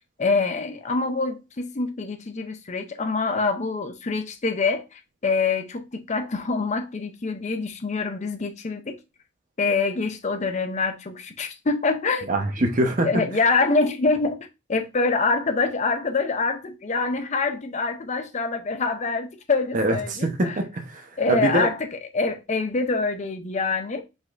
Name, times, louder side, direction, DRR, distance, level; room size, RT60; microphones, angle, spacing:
voice 1, 0.2-8.9 9.6-12.3 13.0-14.4 14.7-20.6 21.2-24.0, left 4 dB, 35° left, 0.6 m, -25 dB
voice 2, 12.3-13.1 19.7-21.7, right 1 dB, 40° right, 0.9 m, -24 dB
5.2 x 4.1 x 2.5 m
head